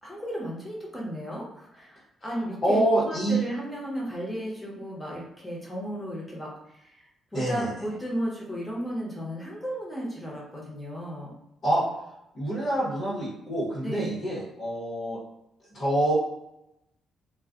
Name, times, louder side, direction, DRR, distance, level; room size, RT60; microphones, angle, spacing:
voice 1, 0.0-11.3 13.8-14.2, equal, 10° left, -4 dB, 1.1 m, -34 dB
voice 2, 2.6-3.4 7.3-7.7 11.6-11.8 12.3-15.2 15.7-16.1, right 1 dB, 50° left, -8 dB, 1.1 m, -26 dB
2.4 x 2.3 x 3.6 m, 0.85 s
cardioid pair, 90°, 0 cm